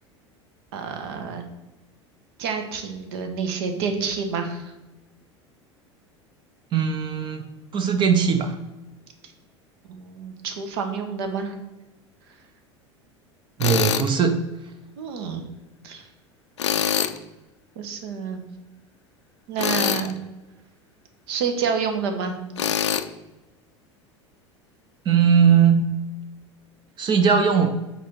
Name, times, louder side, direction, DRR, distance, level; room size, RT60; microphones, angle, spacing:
voice 1, 0.7-1.4 2.4-4.7 9.9-11.5 15.0-15.4 15.8-16.1 17.8-18.4 19.5-20.1 21.3-22.4, right 5 dB, 55° right, 5 dB, 1.0 m, -28 dB
voice 2, 6.7-7.4 7.7-8.6 13.6-14.4 25.1-25.9 27.0-27.7, right 6 dB, 30° right, 7 dB, 0.6 m, -19 dB
Tools, 13.6-14.1 16.6-17.2 19.6-20.1 22.6-23.0, left 9 dB, 70° left, 0.4 m, -23 dB
5.9 x 4.1 x 4.4 m, 1.1 s
figure-of-eight pair, 75°, 15 cm